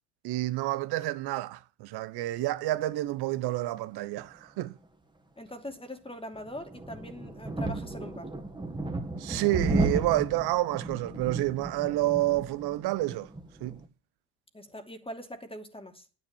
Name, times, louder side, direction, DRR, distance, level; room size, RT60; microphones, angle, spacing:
voice 1, 0.2-4.7 9.2-13.3 13.6-13.8, right 16 dB, 55° right, 1.3 m, -29 dB
voice 2, 5.4-8.3 14.5-16.1, equal, 10° left, 2.6 m, -42 dB
sound 1, 6.3-13.8, right 2 dB, 10° right, 2.2 m, -34 dB
9.9 x 9.7 x 7.3 m
hypercardioid pair, 70°, 45 cm